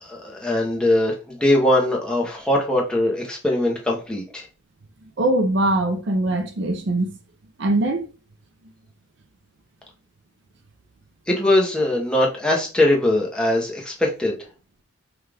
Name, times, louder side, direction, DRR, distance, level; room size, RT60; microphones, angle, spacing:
voice 1, 0.0-4.5 11.3-14.4, left 1 dB, 5° left, 0.8 m, -21 dB
voice 2, 5.2-7.1 7.6-8.1, right 2 dB, 55° right, 0.5 m, -21 dB
5.5 x 2.4 x 3.4 m
head